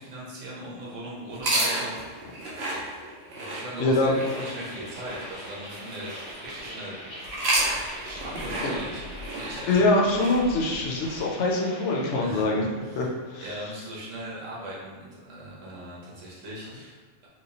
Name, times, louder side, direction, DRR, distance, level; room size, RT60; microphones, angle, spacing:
voice 1, 0.0-2.4 3.3-7.0 8.0-9.0 9.3-9.8 12.2-13.1 13.4-17.3, right 1 dB, 85° right, -5 dB, 1.2 m, -39 dB
sound 1, 1.3-6.7 7.2-11.2, right 1 dB, 60° right, 0.9 m, -32 dB
voice 2, 3.8-4.2 8.6-8.7 9.7-13.1 13.3-13.5, left 2 dB, 75° left, -1 dB, 0.9 m, -24 dB
sound 2, 4.1-12.2, equal, 40° left, 1.3 m, -43 dB
3.0 x 2.9 x 2.8 m, 1.5 s
omnidirectional pair, 1.3 m